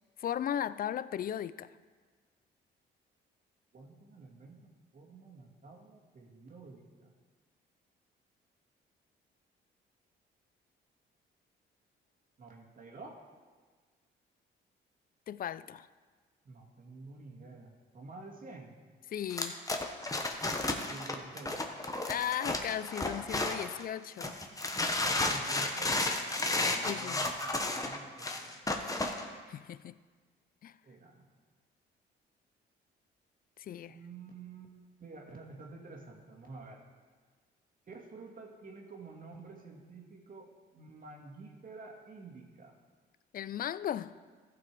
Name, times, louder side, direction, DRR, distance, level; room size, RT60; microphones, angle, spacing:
voice 1, 0.2-1.7 15.3-15.9 19.1-19.6 22.1-24.4 26.6-27.3 29.5-30.0 30.6-30.8 33.6-34.0 43.3-44.1, left 10 dB, 45° left, 0.4 m, -36 dB
voice 2, 3.7-7.1 12.4-13.2 16.5-18.7 20.9-21.6 24.9-27.3 27.6-28.8 30.8-31.3 33.9-34.7 35.0-36.9 37.9-42.8, right 3 dB, 45° right, 1.9 m, -50 dB
sound 1, 19.3-23.8 24.2-29.2, left 2 dB, 15° left, 1.1 m, -32 dB
14.5 x 6.0 x 4.7 m
cardioid pair, 90°, 20 cm